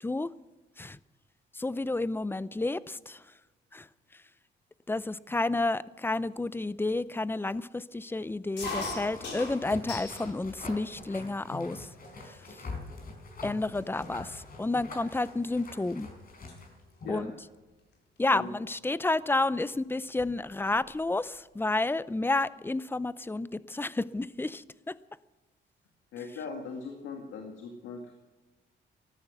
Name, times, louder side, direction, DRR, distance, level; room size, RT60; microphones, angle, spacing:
voice 1, 0.0-0.3 0.8-1.0 1.5-3.4 3.7-4.2 4.9-11.9 12.2-12.7 13.4-16.1 17.1-17.3 18.2-25.0, left 2 dB, 10° left, 0.5 m, -31 dB
sound 1, 8.6-10.3 10.7-11.4 12.0-12.1 12.4-12.8 13.4-13.5 13.7-16.0 16.3-16.6 17.9-18.2 19.3-19.4 19.6-19.7 20.0-20.9, left 3 dB, 60° left, 4.5 m, -40 dB
sound 2, 9.1-17.3, left 3 dB, 45° left, 4.9 m, -44 dB
voice 2, 26.1-28.1, left 4 dB, 85° left, 2.1 m, -39 dB
14.0 x 13.0 x 6.1 m
cardioid pair, 90°, 20 cm